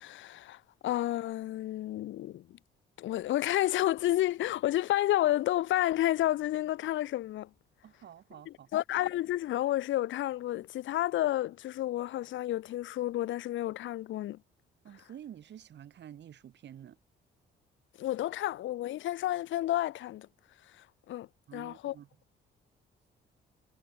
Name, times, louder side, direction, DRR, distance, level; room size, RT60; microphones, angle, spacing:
voice 1, 0.0-2.6 3.0-7.5 8.5-14.4 18.0-20.3 20.8-21.9, left 14 dB, 75° left, 0.7 m, -31 dB
voice 2, 7.8-8.7 14.8-17.0 21.5-22.1, right 10 dB, 60° right, 2.3 m, -49 dB
cardioid pair, 90°, 20 cm